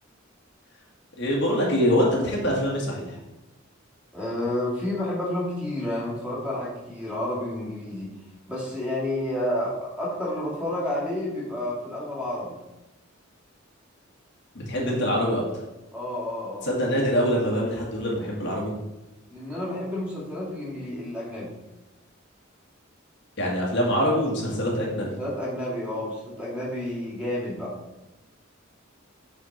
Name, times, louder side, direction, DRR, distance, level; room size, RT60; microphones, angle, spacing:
voice 1, 1.2-3.2 14.5-15.4 16.6-18.7 23.4-25.1, equal, 60° left, -3 dB, 1.7 m, -24 dB
voice 2, 4.1-8.1 8.5-12.6 15.9-16.7 19.3-21.5 25.0-27.7, left 1 dB, 5° right, -7 dB, 2.5 m, -30 dB
7.2 x 4.3 x 4.3 m, 1.0 s
head